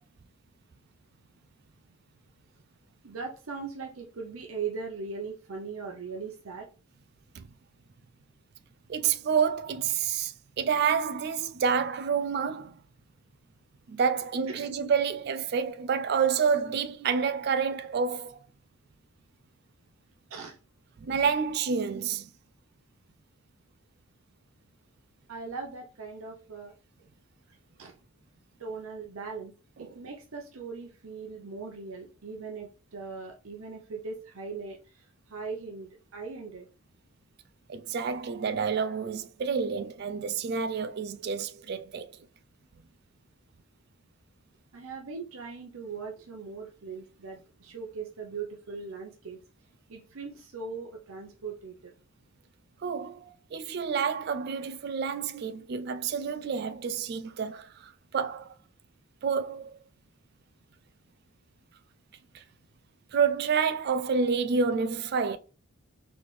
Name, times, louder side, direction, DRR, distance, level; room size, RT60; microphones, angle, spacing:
voice 1, 3.0-6.6 14.5-14.7 20.3-20.6 25.3-26.7 27.8-27.9 28.6-29.5 29.8-35.0 35.3-36.7 44.7-49.4 49.9-51.9, right 5 dB, 85° right, 0.7 m, -39 dB
voice 2, 8.9-12.8 13.9-18.4 21.0-22.3 29.8-30.0 37.7-42.1 52.8-58.6 59.2-59.8 62.3-62.4 63.1-65.4, right 6 dB, 50° right, 0.3 m, -29 dB
4.2 x 3.4 x 3.2 m
head